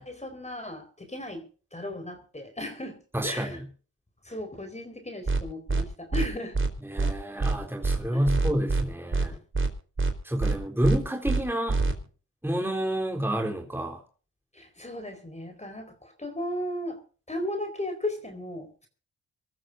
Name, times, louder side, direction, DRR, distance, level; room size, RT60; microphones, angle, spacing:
voice 1, 0.0-1.4 1.7-3.0 3.2-3.6 4.2-6.6 8.1-8.2 9.3-9.4 14.5-17.0 17.3-18.9, left 1 dB, 20° left, 6 dB, 4.4 m, -36 dB
voice 2, 3.1-3.6 6.8-9.4 10.2-11.8 12.4-14.0, equal, 5° right, 2 dB, 3.9 m, -29 dB
sound 1, 5.3-5.4 5.7-5.8 6.1-6.3 6.5-6.7 7.0-7.1 7.4-7.6 7.8-8.0 8.3-8.8 9.1-9.3 9.5-9.7 10.0-10.1 10.4-10.6 10.8-11.0 11.3-11.4 11.7-11.9, right 3 dB, 35° right, 4.0 m, -25 dB
25.5 x 13.5 x 2.6 m, 0.39 s
cardioid pair, 60°, 35 cm